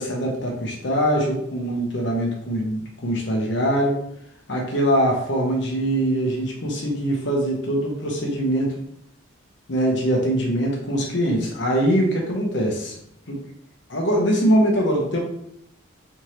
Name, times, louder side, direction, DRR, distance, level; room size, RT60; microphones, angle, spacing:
voice 1, 0.0-4.0 4.5-8.8 9.7-13.0 13.3-13.4 13.9-15.2, right 1 dB, 60° left, 0 dB, 0.9 m, -22 dB
3.5 x 3.2 x 2.9 m, 0.75 s
head